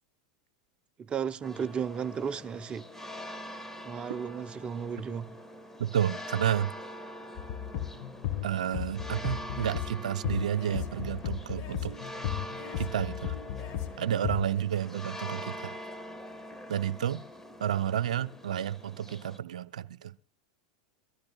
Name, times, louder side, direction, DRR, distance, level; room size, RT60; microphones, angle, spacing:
voice 1, 1.0-2.9 3.8-5.4, right 7 dB, 30° right, 0.6 m, -34 dB
sound 1, 1.4-19.4, equal, 10° left, 1.4 m, -44 dB
voice 2, 5.8-6.7 8.4-12.0 12.8-13.4 14.0-15.8 16.7-17.2 17.6-20.1, right 10 dB, 80° right, 0.6 m, -31 dB
sound 2, 7.4-14.6, left 11 dB, 50° left, 1.5 m, -36 dB
23.0 x 13.5 x 2.3 m
hypercardioid pair, 100°, 4 cm